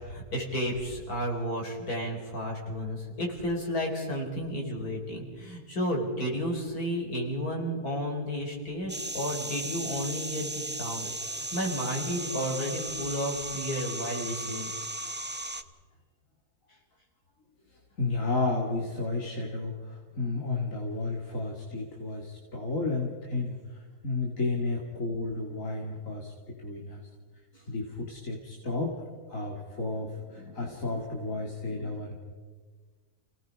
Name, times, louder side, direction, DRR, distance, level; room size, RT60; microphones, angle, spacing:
voice 1, 0.0-14.7 27.5-27.6, equal, 70° left, 0 dB, 4.9 m, -32 dB
sound 1, 8.9-15.6, right 2 dB, 15° right, 0.4 m, -36 dB
voice 2, 18.0-27.0 27.7-28.9 29.3-32.2, left 3 dB, 55° left, -1 dB, 2.7 m, -32 dB
30.0 x 18.0 x 5.2 m, 1.5 s
omnidirectional pair, 1.6 m